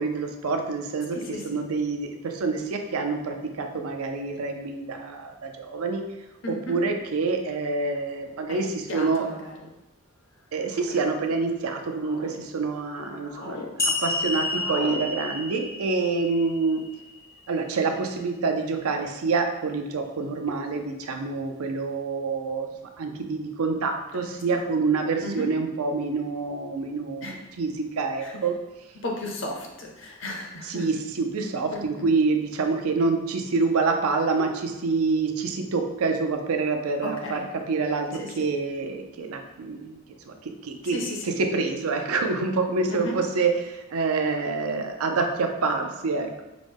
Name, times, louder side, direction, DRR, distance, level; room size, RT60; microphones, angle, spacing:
voice 1, 0.0-1.2 1.4-6.0 6.5-9.3 10.5-16.8 17.5-22.7 23.0-28.5 30.6-40.0 40.3-41.0 41.2-46.4, right 4 dB, 85° right, 4 dB, 0.5 m, -27 dB
voice 2, 1.1-1.6 6.4-6.8 8.5-9.5 10.9-11.2 24.1-24.2 25.2-25.5 27.2-27.3 28.2-28.3 29.0-30.9 31.7-31.8 37.0-37.4 38.2-38.3 40.8-41.2 42.9-43.2, left 1 dB, 60° left, 0 dB, 0.7 m, -34 dB
sound 1, 7.0-7.1 8.1-8.4 9.3-9.7 10.6-11.0 11.6-12.4 12.8-13.7 14.0-15.0, left 3 dB, 85° left, 1.0 m, -39 dB
sound 2, 13.8-17.2, left 2 dB, 15° left, 0.5 m, -30 dB
4.9 x 2.1 x 3.4 m, 1.0 s
head